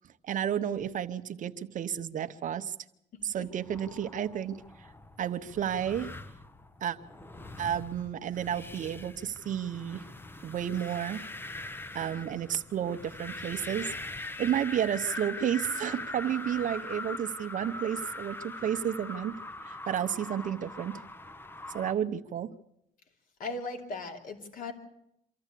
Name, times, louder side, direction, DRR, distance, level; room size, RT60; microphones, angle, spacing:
voice 1, 0.2-2.7 3.2-4.9 5.2-6.1 6.8-7.0 7.6-10.1 10.4-11.3 11.9-19.4 19.7-21.0 21.7-22.5, right 9 dB, 50° right, 9 dB, 0.9 m, -32 dB
voice 2, 3.1-3.5 23.4-24.7, left 3 dB, 55° left, 4 dB, 2.9 m, -38 dB
sound 1, 3.4-21.9, left 2 dB, 15° left, 0.7 m, -42 dB
25.0 x 14.0 x 8.4 m, 0.80 s
cardioid pair, 110°, 17 cm